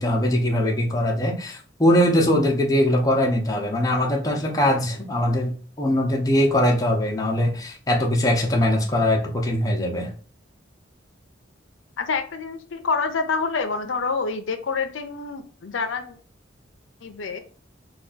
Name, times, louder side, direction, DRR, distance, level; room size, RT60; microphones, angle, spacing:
voice 1, 0.0-10.1, left 1 dB, 20° left, 1 dB, 0.6 m, -21 dB
voice 2, 12.0-16.2 17.0-17.4, left 4 dB, 80° left, 7 dB, 0.5 m, -27 dB
3.4 x 2.3 x 3.8 m, 0.43 s
head